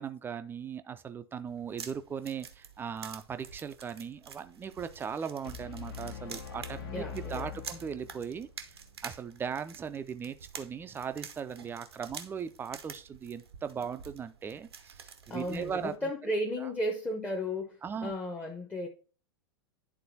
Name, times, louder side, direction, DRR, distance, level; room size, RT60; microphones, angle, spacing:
voice 1, 0.0-8.8 9.0-16.1 16.6-16.7 17.8-18.1, right 7 dB, 15° right, 0.4 m, -38 dB
sound 1, 1.5-16.0, right 7 dB, 70° right, 0.7 m, -48 dB
sound 2, 5.5-8.5, left 6 dB, 60° left, 1.1 m, -43 dB
voice 2, 6.9-7.6 15.3-18.9, left 1 dB, 10° left, 0.8 m, -34 dB
10.5 x 3.7 x 2.7 m
figure-of-eight pair, 90°, 14 cm